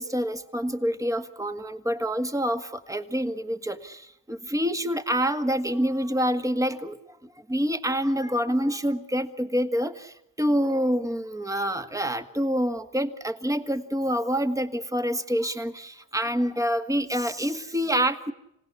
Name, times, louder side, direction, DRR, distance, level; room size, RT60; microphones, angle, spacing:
voice 1, 0.0-7.0 7.5-18.3, equal, 10° right, 9 dB, 1.9 m, -27 dB
27.0 x 17.5 x 9.7 m, 0.82 s
cardioid pair, 90°, 30 cm